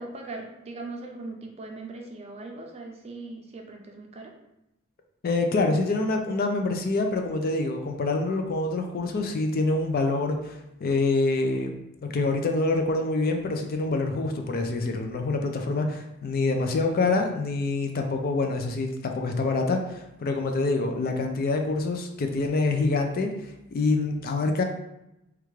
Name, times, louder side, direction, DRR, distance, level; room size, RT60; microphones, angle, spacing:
voice 1, 0.0-4.3, right 2 dB, 30° right, 1 dB, 0.5 m, -39 dB
voice 2, 5.2-11.7 12.1-23.3 23.7-24.6, left 3 dB, 45° left, 4 dB, 0.4 m, -26 dB
3.4 x 2.3 x 3.1 m, 0.87 s
head